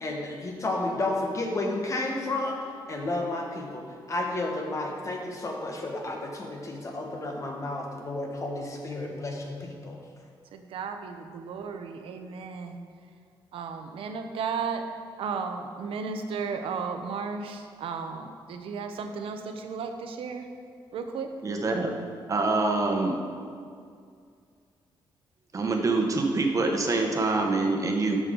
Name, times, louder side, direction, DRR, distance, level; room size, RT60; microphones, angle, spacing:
voice 1, 0.0-2.6 2.9-10.0, left 2 dB, 35° left, 1 dB, 1.5 m, -32 dB
voice 2, 10.5-12.8 13.5-14.9 15.2-20.5 20.9-21.3, right 5 dB, 85° right, 6 dB, 0.8 m, -34 dB
voice 3, 21.4-21.9 22.3-23.2 25.5-28.2, right 3 dB, 40° right, 2 dB, 1.2 m, -25 dB
12.5 x 6.4 x 3.9 m, 2.2 s
cardioid pair, 115°, 9 cm